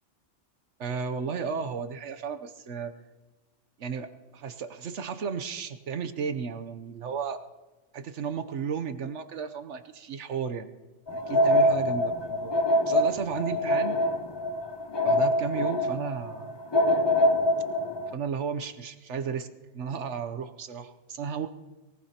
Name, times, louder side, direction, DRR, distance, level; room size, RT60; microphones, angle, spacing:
voice 1, 0.8-2.9 3.8-7.4 7.9-10.7 11.1-12.5 12.9-14.0 15.0-16.5 18.1-19.5 19.7-21.5, right 6 dB, 75° right, 10 dB, 1.1 m, -34 dB
sound 1, 11.1-18.2, left 1 dB, 35° left, 0.4 m, -25 dB
23.0 x 18.0 x 2.9 m, 1.2 s
omnidirectional pair, 1.2 m